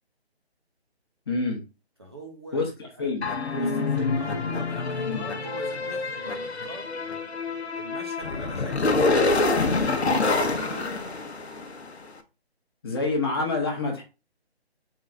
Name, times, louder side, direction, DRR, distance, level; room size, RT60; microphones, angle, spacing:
voice 1, 1.3-1.6 2.5-2.7 3.0-3.2 5.1-5.3 12.8-14.0, left 3 dB, 25° left, 1 dB, 0.8 m, -27 dB
voice 2, 2.0-3.1 3.5-6.9 7.8-10.9, right 1 dB, 25° right, 0 dB, 0.5 m, -42 dB
sound 1, 3.2-11.9, left 3 dB, 80° left, 0.9 m, -26 dB
3.8 x 2.5 x 4.3 m, 0.30 s
figure-of-eight pair, 155°, 33 cm